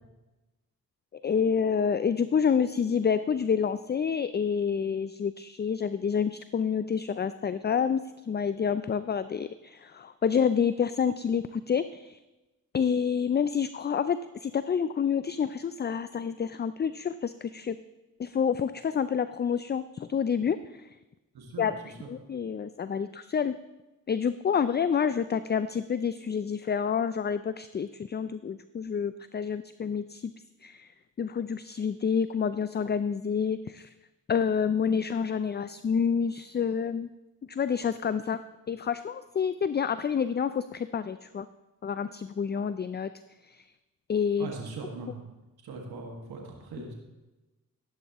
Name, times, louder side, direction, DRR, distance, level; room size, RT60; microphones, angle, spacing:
voice 1, 1.1-12.2 12.7-17.8 18.2-21.0 21.6-21.8 22.1-23.6 24.1-30.3 30.6-30.9 31.2-33.9 34.3-37.1 37.5-38.4 38.7-41.5 41.8-43.1 43.4-43.6 44.1-44.5, left 7 dB, 30° left, 13 dB, 0.4 m, -28 dB
voice 2, 21.3-21.7 22.0-22.1 44.4-45.2 45.6-46.9, right 3 dB, 85° right, 0 dB, 1.9 m, -40 dB
14.5 x 11.0 x 3.0 m, 1.1 s
supercardioid pair, 45°, 37 cm